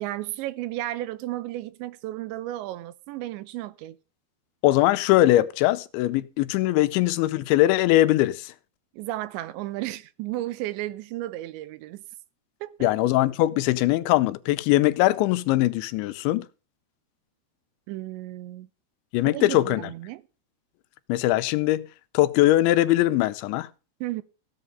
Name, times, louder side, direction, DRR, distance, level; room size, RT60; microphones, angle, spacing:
voice 1, 0.0-4.0 8.9-12.0 12.6-12.9 17.9-18.7 19.3-20.2 24.0-24.2, right 16 dB, 85° right, 3.2 m, -33 dB
voice 2, 4.6-8.5 12.8-16.5 19.1-19.8 21.1-21.9 22.1-23.7, left 15 dB, 90° left, 3.1 m, -21 dB
15.5 x 8.4 x 5.3 m
omnidirectional pair, 5.2 m